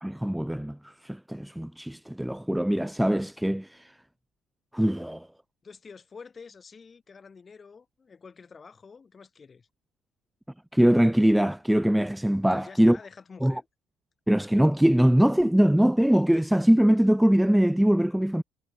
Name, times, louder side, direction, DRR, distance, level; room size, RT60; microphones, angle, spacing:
voice 1, 0.0-3.9 4.7-5.3 10.7-13.0 13.4-13.6 14.3-18.4, equal, 5° right, 0.6 m, -22 dB
voice 2, 5.6-9.7 12.5-13.7, left 5 dB, 30° left, 5.8 m, -48 dB
hypercardioid pair, 65°, 0 cm